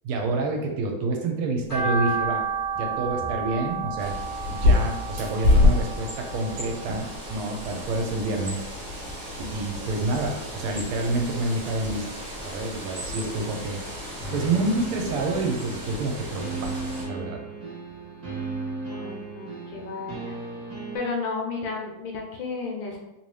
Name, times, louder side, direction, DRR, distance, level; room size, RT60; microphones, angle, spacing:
voice 1, 0.0-2.4 2.7-4.1 4.5-8.6 9.4-12.0 12.4-13.8 14.3-16.8 17.1-17.4, right 2 dB, 85° right, 3 dB, 1.5 m, -28 dB
sound 1, 1.7-8.0 8.4-9.5 9.9-11.3 11.7-11.8 12.2-12.3 12.6-12.7, right 4 dB, 40° left, 0.5 m, -32 dB
Bird, 4.0-17.1, left 2 dB, 55° right, 1.1 m, -28 dB
sound 2, 14.2-21.0, right 2 dB, 30° right, 1.2 m, -36 dB
voice 2, 18.9-20.4 20.9-23.0, left 4 dB, 75° left, 0 dB, 1.3 m, -33 dB
3.4 x 2.7 x 3.1 m, 0.95 s
omnidirectional pair, 2.4 m